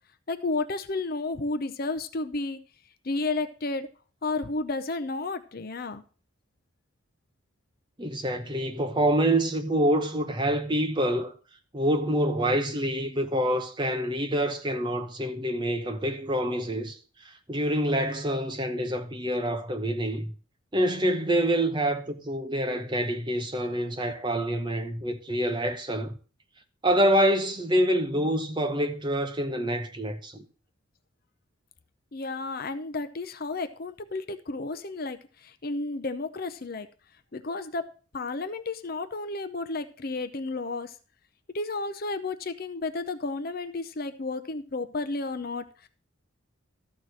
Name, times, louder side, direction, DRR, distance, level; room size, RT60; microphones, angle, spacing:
voice 1, 0.3-2.6 3.0-3.9 4.2-6.0 32.1-36.9 37.3-37.9 38.1-40.9 41.5-45.9, left 3 dB, 45° left, 0.6 m, -32 dB
voice 2, 8.0-11.3 11.7-17.0 17.2-20.3 20.7-26.1 26.8-30.4, right 1 dB, 20° right, 0.9 m, -26 dB
13.0 x 4.6 x 6.4 m
head